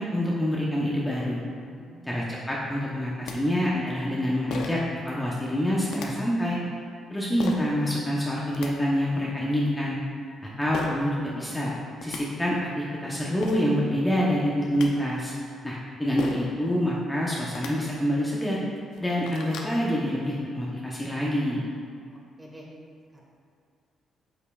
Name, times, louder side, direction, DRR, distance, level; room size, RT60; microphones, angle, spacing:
voice 1, 0.0-1.4 2.0-6.6 7.1-10.0 10.6-11.7 12.0-15.3 15.6-18.6 19.0-21.6, equal, 10° left, -5 dB, 0.9 m, -26 dB
voice 2, 1.7-2.2 22.1-22.7 23.1-23.2, right 1 dB, 15° right, -2 dB, 1.4 m, -49 dB
sound 1, 2.9-3.0 3.3-3.4 4.5-4.9 5.9-6.1 7.4-7.6 8.3-8.7 10.7-10.9 11.7-11.8 12.0-12.2 13.1-13.2 13.4-13.6 14.5-14.9 16.2-16.5 17.4-17.7 18.3-18.4 18.8-19.7, left 4 dB, 80° left, 0.6 m, -35 dB
8.3 x 5.5 x 2.4 m, 2.3 s
cardioid pair, 90°, 0 cm